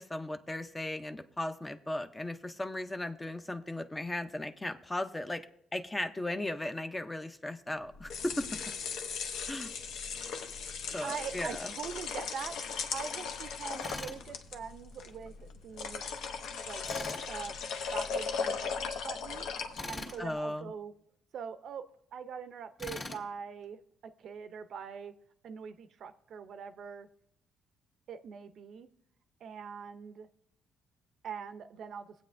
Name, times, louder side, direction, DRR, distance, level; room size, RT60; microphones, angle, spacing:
voice 1, 0.0-5.5 5.7-8.6 9.5-9.7 10.9-11.7 20.2-20.7, left 1 dB, 15° left, 9 dB, 0.5 m, -36 dB
sound 1, 7.9-20.2, left 5 dB, 75° left, 0.8 m, -38 dB
voice 2, 11.0-16.0 16.7-16.8 17.3-19.5 19.9-20.9 21.3-21.8 22.1-23.8 24.2-25.1 25.4-27.1 28.1-28.9 29.4-30.3 31.2-32.1, right 7 dB, 60° right, 10 dB, 0.5 m, -43 dB
Tools, 13.8-14.2 16.8-17.3 19.8-20.2 22.8-23.2, left 2 dB, 30° left, 1.9 m, -40 dB
19.0 x 8.2 x 2.5 m, 0.74 s
cardioid pair, 115°, 0 cm